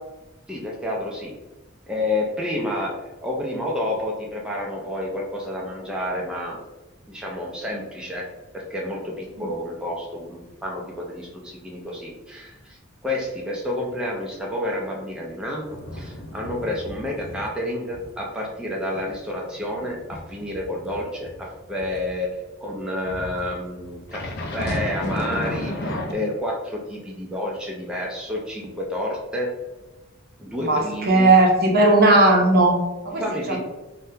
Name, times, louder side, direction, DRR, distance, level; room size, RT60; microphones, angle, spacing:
voice 1, 0.5-1.3 1.9-6.6 7.1-8.3 8.5-12.8 13.0-22.3 22.6-29.5 30.4-31.3 33.2-33.6, left 1 dB, 5° right, -3 dB, 0.4 m, -29 dB
sound 1, 15.6-17.5 17.9-18.1 18.5-22.1 23.1-26.1, left 1 dB, 55° left, 0.5 m, -33 dB
voice 2, 30.6-33.6, right 2 dB, 50° right, 1 dB, 0.6 m, -17 dB
3.5 x 2.1 x 2.6 m, 1.1 s
head